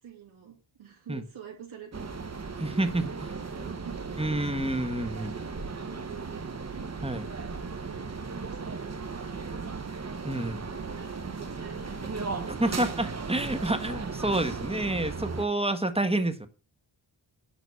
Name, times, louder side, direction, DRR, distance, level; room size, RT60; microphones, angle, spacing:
voice 1, 0.0-2.2 2.9-4.0 4.8-6.5 7.6-9.7 10.7-12.7, right 8 dB, 80° right, -1 dB, 2.9 m, -48 dB
sound 1, 1.9-15.4, right 4 dB, 35° right, 1.2 m, -36 dB
voice 2, 2.6-3.0 4.2-5.3 7.0-7.3 10.2-10.7 12.6-16.5, right 1 dB, 10° right, 9 dB, 1.3 m, -28 dB
11.0 x 4.0 x 6.9 m, 0.34 s
cardioid pair, 80°, 48 cm